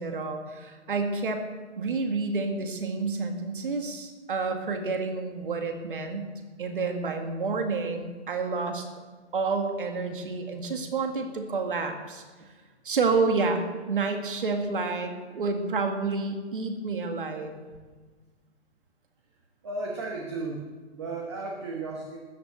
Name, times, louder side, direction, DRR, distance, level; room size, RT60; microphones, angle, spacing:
voice 1, 0.0-1.5 1.8-6.3 6.6-8.9 9.3-12.5 12.8-17.6, right 4 dB, 50° right, 5 dB, 2.1 m, -29 dB
voice 2, 19.6-20.7 20.9-22.2, right 3 dB, 25° right, 0 dB, 1.2 m, -34 dB
13.5 x 9.4 x 8.2 m, 1.4 s
hypercardioid pair, 175°, 35 cm